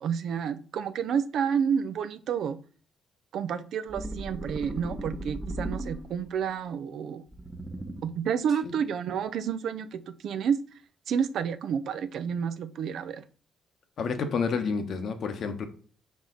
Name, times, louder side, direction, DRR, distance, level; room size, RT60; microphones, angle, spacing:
voice 1, 0.0-2.6 3.3-7.2 8.0-10.6 11.1-13.2, right 7 dB, 70° right, 12 dB, 0.6 m, -30 dB
sound 1, 3.9-6.4 7.3-8.3, right 1 dB, 20° right, 0.9 m, -37 dB
voice 2, 14.0-15.7, left 5 dB, 60° left, 7 dB, 1.1 m, -29 dB
5.6 x 4.8 x 3.9 m, 0.41 s
cardioid pair, 90°, 0 cm